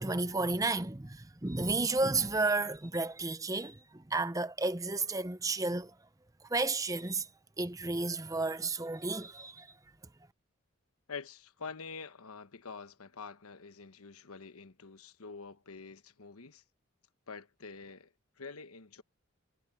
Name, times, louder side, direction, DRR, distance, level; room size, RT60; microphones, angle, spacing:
voice 1, 0.0-5.9 6.5-7.3 7.6-9.7, right 3 dB, 15° right, 0.7 m, -32 dB
voice 2, 11.1-16.6 17.3-19.0, left 5 dB, 85° left, 1.2 m, -46 dB
head